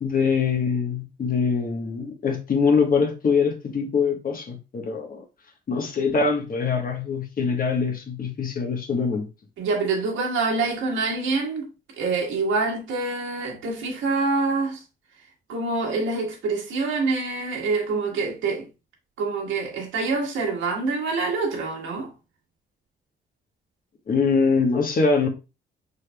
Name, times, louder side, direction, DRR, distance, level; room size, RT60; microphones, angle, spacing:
voice 1, 0.0-5.2 5.7-9.3 24.1-25.3, left 5 dB, 45° left, 1.2 m, -23 dB
voice 2, 9.6-11.7 12.0-14.8 15.5-18.7 19.2-22.1, right 3 dB, 80° right, 1.6 m, -26 dB
5.1 x 4.1 x 2.3 m
cardioid pair, 90°, 20 cm